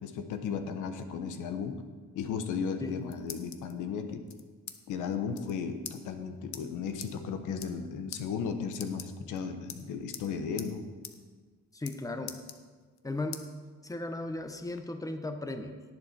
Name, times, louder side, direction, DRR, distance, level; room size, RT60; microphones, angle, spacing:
voice 1, 0.0-1.8 2.1-4.2 4.9-10.8, left 6 dB, 90° left, 7 dB, 1.2 m, -35 dB
sound 1, 2.7-3.7 4.3-4.8 5.0-5.1 5.3-5.5 5.8-6.0 6.5-6.6 7.0-7.1 7.5-7.8 8.1-8.2 8.7-9.4 9.7-10.3 10.6-10.7 11.0-11.2 11.4-12.0 12.3-13.0 13.3-13.5 13.9-14.8, left 9 dB, 65° left, 1.1 m, -43 dB
voice 2, 11.7-12.4 13.0-13.5 13.8-15.8, left 2 dB, 10° left, 7 dB, 1.1 m, -36 dB
17.5 x 7.8 x 4.4 m, 1.4 s
cardioid pair, 90°, 30 cm